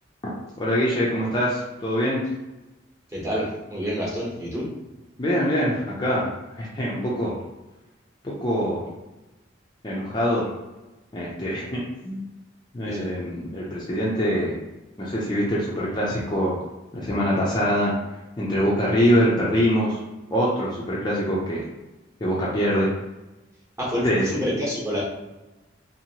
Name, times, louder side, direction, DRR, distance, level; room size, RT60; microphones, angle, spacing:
voice 1, 0.6-2.2 5.2-6.3 6.6-7.3 8.2-8.8 9.8-10.4 11.1-12.2 12.7-14.6 15.0-16.6 16.9-17.9 18.4-20.0 20.3-21.6 22.2-22.9 24.0-24.2, equal, 20° left, -6 dB, 0.4 m, -24 dB
voice 2, 3.1-4.6 12.8-13.1 23.8-25.0, equal, 15° right, -7 dB, 1.0 m, -28 dB
2.8 x 2.6 x 2.8 m, 1.1 s
head